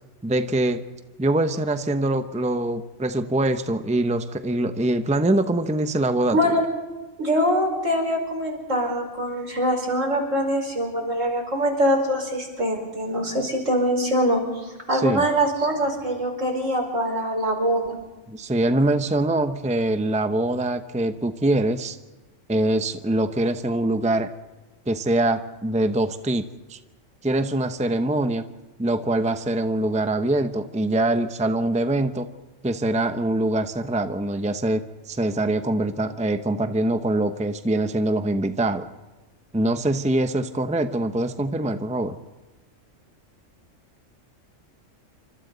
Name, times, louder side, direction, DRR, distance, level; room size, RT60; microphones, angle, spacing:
voice 1, 0.2-0.8 1.2-6.4 14.9-15.2 18.3-22.0 22.5-24.3 24.9-26.8 27.2-28.5 28.8-32.3 32.6-38.9 39.5-42.2, right 1 dB, 5° right, 9 dB, 0.8 m, -23 dB
voice 2, 7.2-18.0, equal, 75° right, 2 dB, 5.3 m, -23 dB
29.0 x 25.5 x 4.0 m, 1.2 s
omnidirectional pair, 1.3 m